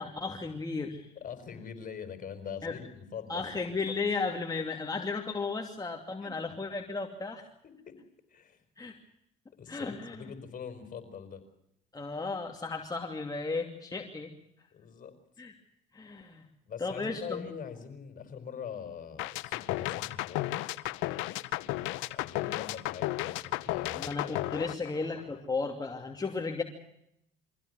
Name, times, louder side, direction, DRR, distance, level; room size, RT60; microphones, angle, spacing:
voice 1, 0.0-1.1 2.6-2.7 3.3-7.5 8.8-9.0 9.7-10.2 11.9-14.3 15.4-15.5 15.9-16.5 16.8-17.5 23.9-26.6, left 4 dB, 20° left, 2 dB, 2.7 m, -34 dB
voice 2, 1.2-3.5 6.2-6.3 7.6-8.0 8.3-8.6 9.6-11.4 14.7-15.1 16.7-20.5 22.1-24.2 24.5-24.9, left 7 dB, 45° left, 9 dB, 5.2 m, -43 dB
sound 1, 19.2-25.4, left 17 dB, 80° left, 0.9 m, -34 dB
24.0 x 15.5 x 9.4 m, 0.78 s
supercardioid pair, 85°, 20 cm